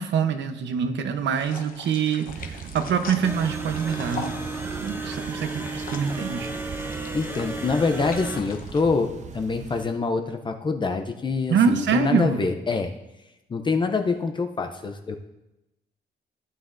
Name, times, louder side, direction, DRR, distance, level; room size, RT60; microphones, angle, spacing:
voice 1, 0.0-4.3 4.8-6.5 11.5-12.4, right 7 dB, 85° right, 8 dB, 0.9 m, -25 dB
sound 1, 1.3-8.8, left 5 dB, 50° left, 0.9 m, -42 dB
sound 2, 2.3-9.8, right 6 dB, 40° right, 0.5 m, -40 dB
sound 3, 3.2-8.4, right 3 dB, 10° right, 0.8 m, -33 dB
voice 2, 7.1-12.9 13.5-15.2, left 4 dB, 25° left, 5 dB, 0.5 m, -25 dB
15.0 x 9.4 x 2.6 m, 0.96 s
wide cardioid pair, 165°, 18 cm